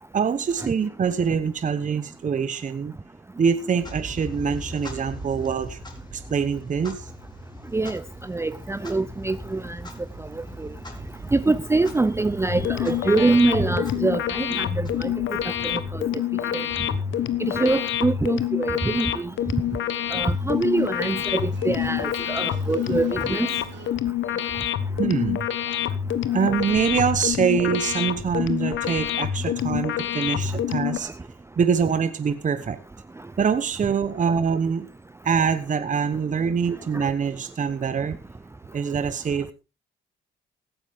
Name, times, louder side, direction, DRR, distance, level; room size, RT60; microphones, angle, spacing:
voice 1, 0.1-2.9 3.4-5.8 6.1-7.1 25.0-25.5 26.3-31.1 31.6-32.8 33.4-34.9 35.2-38.2 38.7-39.5, right 6 dB, 40° right, 1.1 m, -24 dB
Clock, 3.7-15.6, left 1 dB, 20° left, 3.7 m, -40 dB
voice 2, 8.3-9.8 11.3-15.1 15.7-16.0 16.5-16.7 17.5-19.3 20.1-23.5, right 3 dB, 15° right, 0.6 m, -24 dB
sound 1, 12.5-31.0, left 11 dB, 75° left, 1.2 m, -27 dB
sound 2, 19.0-23.9, right 8 dB, 65° right, 2.6 m, -48 dB
16.0 x 12.5 x 3.5 m
cardioid pair, 90°, 20 cm